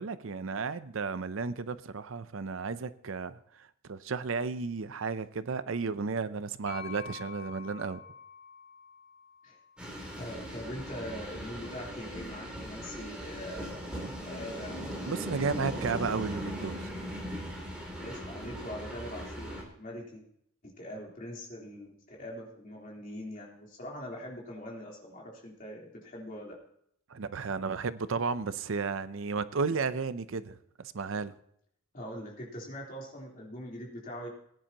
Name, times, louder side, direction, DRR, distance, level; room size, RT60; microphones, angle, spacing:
voice 1, 0.0-8.0 15.0-16.9 27.1-31.3, right 4 dB, 70° right, 0.6 m, -33 dB
sound 1, 6.7-10.4, left 5 dB, 70° left, 3.3 m, -47 dB
sound 2, 9.8-19.6, equal, 5° right, 3.3 m, -39 dB
voice 2, 10.2-13.8 14.2-14.8 18.0-20.2 20.6-26.5 31.9-34.3, equal, 40° left, 3.5 m, -42 dB
19.5 x 10.0 x 2.9 m
head